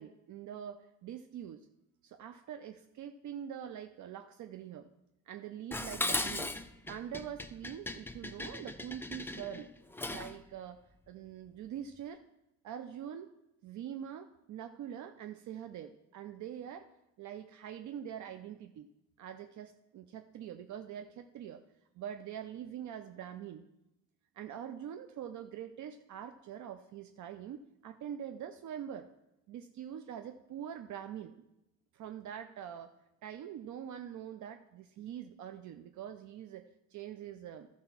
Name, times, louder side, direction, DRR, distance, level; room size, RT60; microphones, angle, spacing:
voice 1, 0.0-1.6 2.0-4.9 5.3-6.5 6.9-9.7 10.1-10.8 11.1-12.2 12.6-13.3 13.6-16.9 17.2-18.9 19.2-21.6 22.0-23.7 24.4-29.1 29.5-31.4 31.9-32.9 33.2-37.7, right 9 dB, 70° right, 7 dB, 0.6 m, -44 dB
Dishes pots and pans, 5.7-10.4, left 2 dB, 5° left, 0.5 m, -38 dB
12.5 x 4.4 x 5.8 m, 0.88 s
cardioid pair, 90°, 30 cm